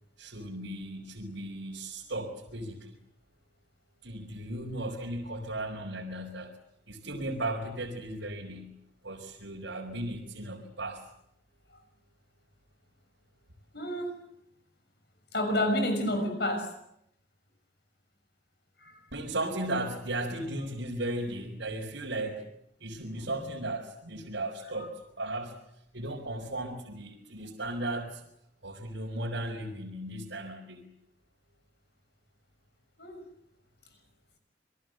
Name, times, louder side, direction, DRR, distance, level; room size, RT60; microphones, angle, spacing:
voice 1, 0.2-2.9 4.0-6.5 6.9-8.7 9.0-11.0 19.1-22.4 22.8-25.6 25.9-28.2 28.6-30.9, right 1 dB, 80° right, 4.8 m, -36 dB
voice 2, 13.7-14.2 15.3-16.7 18.8-19.0 23.1-23.3 33.0-33.2, left 1 dB, 60° left, 6.2 m, -30 dB
29.0 x 22.5 x 7.9 m
head